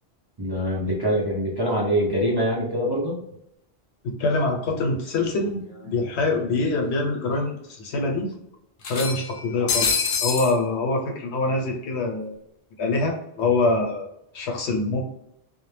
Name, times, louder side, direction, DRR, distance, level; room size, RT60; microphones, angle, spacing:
voice 1, 0.4-3.2, equal, 35° right, -5 dB, 0.4 m, -24 dB
voice 2, 4.0-8.3 8.9-12.3 12.8-14.1 14.3-15.0, left 3 dB, 85° left, 2 dB, 1.0 m, -25 dB
sound 1, 5.4-5.5 5.8-5.9 7.0-7.1 7.4-7.5 8.8-10.5, left 5 dB, 65° left, 0.7 m, -26 dB
2.1 x 2.0 x 3.2 m, 0.78 s
omnidirectional pair, 1.1 m